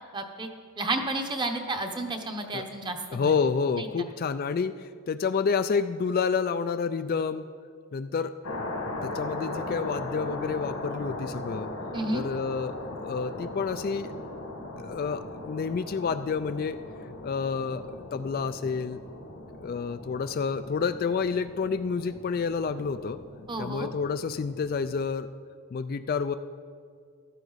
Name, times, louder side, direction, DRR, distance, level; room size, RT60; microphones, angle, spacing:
voice 1, 0.1-0.5 0.8-3.3 3.8-3.9 11.9-12.2 23.5-23.9, right 2 dB, 20° right, 5 dB, 0.9 m, -31 dB
voice 2, 3.1-7.5 7.9-8.3 9.0-11.7 12.1-14.1 14.8-16.8 17.2-19.0 19.6-23.2 23.6-25.3 25.7-26.3, left 5 dB, 45° left, 11 dB, 0.3 m, -29 dB
sound 1, 8.4-25.0, left 2 dB, 85° left, 1.9 m, -39 dB
14.5 x 12.5 x 4.0 m, 2.1 s
head